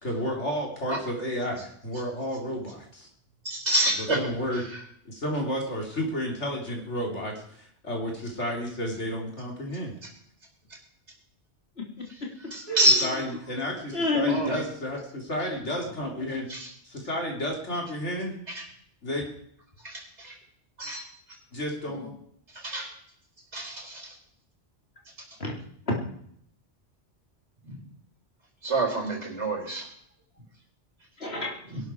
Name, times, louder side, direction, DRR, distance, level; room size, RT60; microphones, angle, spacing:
voice 1, 0.0-3.1 4.0-4.6 5.1-9.9 13.0-16.5 16.8-18.4 19.0-19.3 21.5-22.1, equal, 85° left, 0 dB, 4.1 m, -32 dB
voice 2, 3.4-4.2 12.5-13.1 14.3-14.6 16.5-16.7 18.5-18.6 19.8-20.3 20.8-21.0 22.6-22.9 23.5-24.1 27.6-27.8 28.6-29.9, right 1 dB, 75° right, 0 dB, 3.9 m, -27 dB
voice 3, 11.8-13.1 13.9-14.5 21.9-22.0 25.4-25.6 25.9-26.0 31.2-31.6, left 2 dB, 60° left, 0 dB, 3.5 m, -30 dB
21.0 x 12.0 x 4.7 m, 0.66 s
omnidirectional pair, 1.2 m